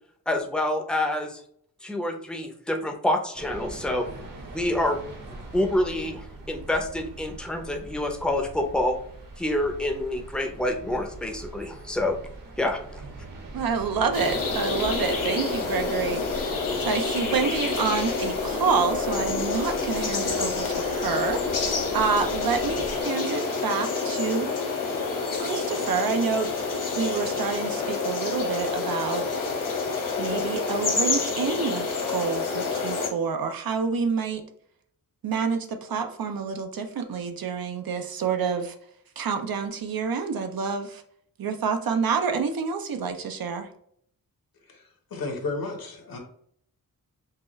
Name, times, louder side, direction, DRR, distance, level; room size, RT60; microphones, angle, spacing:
voice 1, 0.3-1.4 1.8-4.1 4.5-9.0 9.4-12.2 12.6-13.0, left 1 dB, 5° left, 4 dB, 0.6 m, -27 dB
sound 1, 3.3-23.0, right 2 dB, 65° right, 1.2 m, -42 dB
voice 2, 13.5-24.5 25.4-26.5 27.0-29.3 30.2-34.4 35.2-38.7 39.2-41.0 41.4-43.7, right 5 dB, 80° right, 6 dB, 0.7 m, -28 dB
sound 2, 14.1-33.1, left 4 dB, 60° left, 1.1 m, -28 dB
voice 3, 44.7-46.2, left 3 dB, 80° left, 2 dB, 1.3 m, -33 dB
5.7 x 2.4 x 3.1 m, 0.66 s
wide cardioid pair, 145°, 35 cm